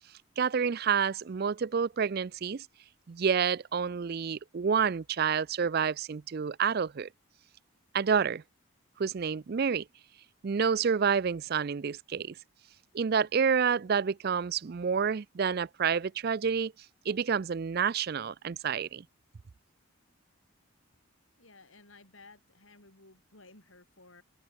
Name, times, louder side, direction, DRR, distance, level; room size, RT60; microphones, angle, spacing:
voice 1, 0.4-2.7 3.1-7.1 7.9-8.4 9.0-9.8 10.4-12.3 12.9-16.7 17.1-19.0, right 6 dB, 45° right, 0.4 m, -29 dB
voice 2, 21.4-24.2, left 3 dB, 70° left, 6.5 m, -56 dB
head